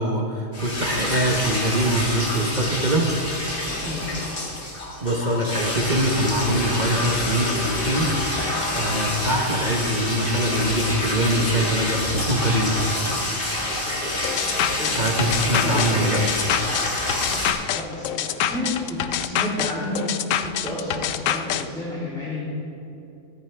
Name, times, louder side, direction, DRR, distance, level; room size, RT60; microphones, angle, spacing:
voice 1, 0.0-3.1 5.0-8.1 8.7-12.8 14.9-16.2, right 1 dB, 35° right, 0 dB, 1.0 m, -23 dB
sound 1, 0.5-17.5, left 1 dB, 40° left, 2.0 m, -27 dB
voice 2, 3.7-4.2 14.8-15.0 15.3-16.1 17.7-22.4, left 1 dB, 5° left, -10 dB, 2.6 m, -31 dB
sound 2, 14.2-21.6, left 10 dB, 75° left, 0.9 m, -26 dB
24.0 x 9.3 x 3.3 m, 2.8 s
omnidirectional pair, 1.4 m